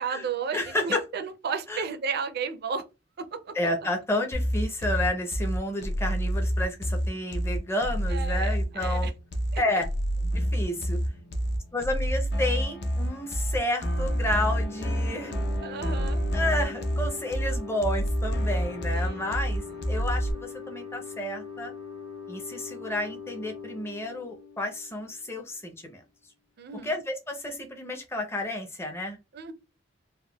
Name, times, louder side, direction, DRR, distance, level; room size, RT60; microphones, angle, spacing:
voice 1, 0.0-2.8 3.2-3.5 8.1-9.1 9.5-9.6 15.6-16.2 18.9-19.4 26.6-27.0 29.3-29.5, right 6 dB, 55° right, 0.4 m, -33 dB
voice 2, 0.5-1.0 1.7-1.8 3.5-9.1 9.6-9.9 10.3-11.0 11.7-15.3 16.3-21.7 22.3-26.0 26.8-29.2, left 1 dB, 15° left, 0.5 m, -31 dB
sound 1, 4.3-20.3, equal, 60° left, 0.5 m, -28 dB
sound 2, 14.0-25.5, left 6 dB, 80° left, 1.2 m, -42 dB
3.4 x 2.1 x 2.2 m
head